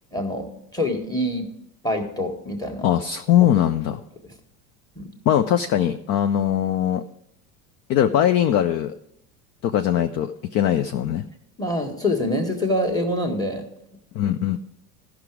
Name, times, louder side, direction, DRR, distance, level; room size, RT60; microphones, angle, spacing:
voice 1, 0.1-1.5 1.8-2.9 4.9-5.1 11.6-13.7, left 1 dB, 10° left, 3 dB, 1.6 m, -25 dB
voice 2, 2.8-4.0 5.3-7.0 7.9-8.9 9.6-11.3 14.1-14.6, left 10 dB, 35° left, 9 dB, 0.4 m, -21 dB
14.0 x 6.0 x 4.8 m, 0.75 s
supercardioid pair, 110°, 48 cm